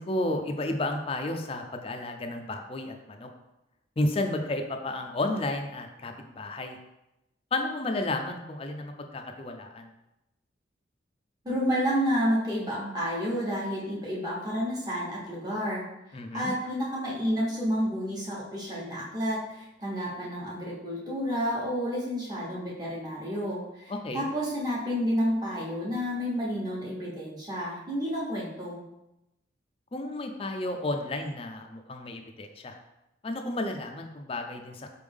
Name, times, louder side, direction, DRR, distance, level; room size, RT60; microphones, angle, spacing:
voice 1, 0.0-3.3 4.0-6.8 7.5-9.9 16.1-16.5 23.9-24.2 29.9-32.8 33.2-34.9, left 2 dB, 30° left, 4 dB, 0.4 m, -32 dB
voice 2, 11.4-15.8 16.3-28.8, equal, 20° right, -6 dB, 1.1 m, -30 dB
4.4 x 3.4 x 3.5 m, 0.92 s
head